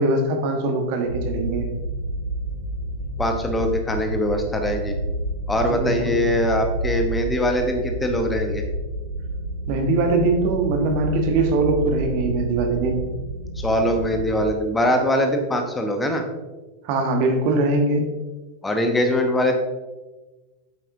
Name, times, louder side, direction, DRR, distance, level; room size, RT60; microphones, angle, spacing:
voice 1, 0.0-1.7 5.7-6.2 9.7-13.0 16.8-18.0, right 2 dB, 45° right, 4 dB, 1.2 m, -22 dB
sound 1, 1.0-14.5, right 1 dB, 90° left, 1.2 m, -29 dB
voice 2, 3.2-5.0 5.5-8.6 13.6-16.2 18.6-19.5, equal, 10° left, 4 dB, 0.9 m, -22 dB
9.2 x 7.5 x 2.7 m, 1.2 s
figure-of-eight pair, 90°, 0 cm